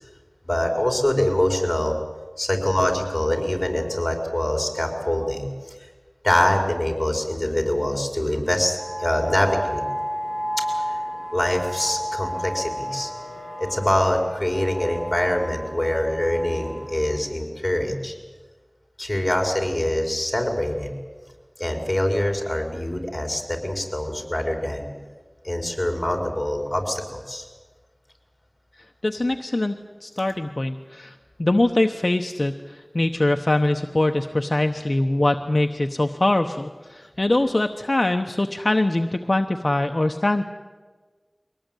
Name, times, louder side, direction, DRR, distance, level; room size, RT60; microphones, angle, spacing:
voice 1, 0.4-1.9 2.4-5.5 6.2-9.8 10.6-11.0 11.3-13.1 13.6-18.1 19.0-20.9 21.6-24.9 25.4-27.4, left 1 dB, 25° left, 3 dB, 4.6 m, -24 dB
sound 1, 8.8-17.2, equal, 35° right, 4.5 m, -32 dB
voice 2, 29.0-29.8 30.0-40.4, left 2 dB, 60° left, 5 dB, 0.9 m, -23 dB
23.5 x 18.5 x 9.1 m, 1.4 s
wide cardioid pair, 45°, 0 cm